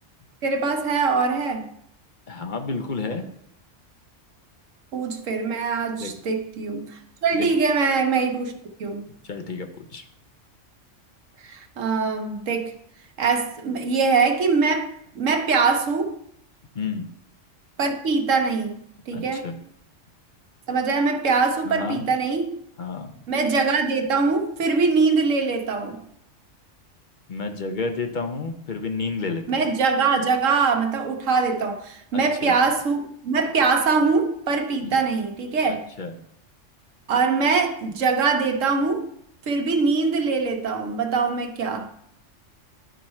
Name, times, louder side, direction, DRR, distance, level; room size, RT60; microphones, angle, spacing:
voice 1, 0.4-1.7 4.9-9.1 11.4-12.7 13.2-16.2 17.8-19.6 20.7-22.6 23.3-26.0 29.5-35.9 37.1-39.1 39.5-41.9, right 4 dB, 85° right, 1.2 m, -23 dB
voice 2, 2.3-3.3 6.0-6.1 7.3-7.5 9.2-10.0 16.7-17.1 19.1-19.6 21.6-22.0 22.8-23.1 27.3-29.6 32.1-32.5 34.8-34.9 35.7-36.1, left 4 dB, 45° left, 0.8 m, -31 dB
11.5 x 4.6 x 4.3 m
omnidirectional pair, 1.3 m